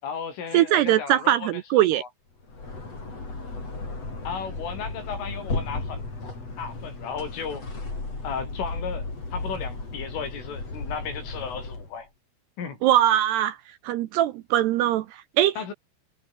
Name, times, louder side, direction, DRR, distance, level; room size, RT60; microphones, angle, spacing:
voice 1, 0.0-2.1 4.2-6.2 6.6-7.7 8.2-9.1 9.3-12.1 12.6-12.8 15.6-15.7, left 6 dB, 80° left, 8.3 m, -35 dB
voice 2, 0.5-2.0 12.8-13.6 13.8-15.7, right 13 dB, 75° right, 2.6 m, -21 dB
sound 1, 2.4-12.0, left 3 dB, 30° left, 8.1 m, -35 dB
omnidirectional pair, 5.6 m